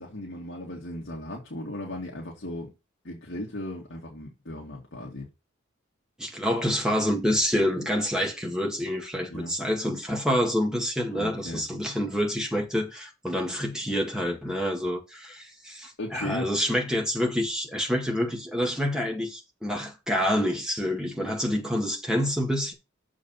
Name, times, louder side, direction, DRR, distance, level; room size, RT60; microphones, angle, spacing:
voice 1, 0.0-2.7 3.0-5.3 9.3-9.5 11.1-11.6 16.0-16.5, left 1 dB, 60° left, 2.2 m, -36 dB
voice 2, 6.2-22.7, equal, 5° right, 2.0 m, -27 dB
7.0 x 5.1 x 5.5 m
head